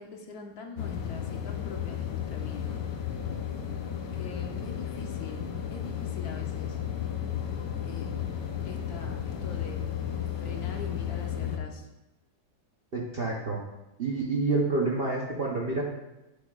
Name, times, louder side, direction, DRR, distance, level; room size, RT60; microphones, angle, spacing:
voice 1, 0.0-2.8 4.1-6.8 7.9-9.8 10.4-11.9, left 4 dB, 65° left, 2 dB, 1.3 m, -44 dB
sound 1, 0.8-11.6, left 9 dB, 85° left, 1.4 m, -33 dB
voice 2, 12.9-13.6 14.0-15.8, right 3 dB, 50° right, -2 dB, 0.7 m, -28 dB
9.7 x 6.8 x 2.4 m, 0.98 s
omnidirectional pair, 1.9 m